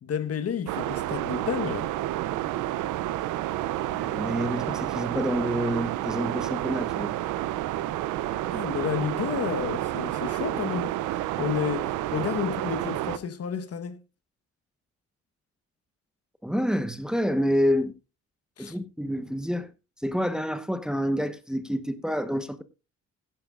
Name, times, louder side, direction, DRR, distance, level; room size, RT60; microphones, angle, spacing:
voice 1, 0.0-1.9 8.5-10.9 11.4-14.0 18.6-18.8, left 7 dB, 55° left, 1.2 m, -31 dB
sound 1, 0.7-13.2, right 14 dB, 90° right, 0.7 m, -30 dB
voice 2, 3.8-7.1 16.4-17.9 18.6-19.7 20.0-22.6, equal, ahead, 1.1 m, -28 dB
16.0 x 10.5 x 2.4 m
cardioid pair, 90°, 30 cm